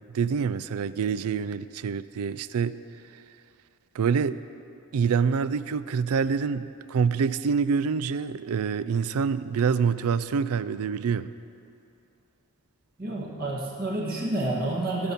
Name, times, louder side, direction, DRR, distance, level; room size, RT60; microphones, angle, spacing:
voice 1, 0.1-2.8 3.1-3.2 3.9-4.4 4.9-11.3, right 6 dB, 80° right, 15 dB, 0.4 m, -26 dB
voice 2, 13.0-15.1, right 2 dB, 40° right, -4 dB, 1.8 m, -29 dB
16.0 x 5.9 x 6.9 m, 2.7 s
head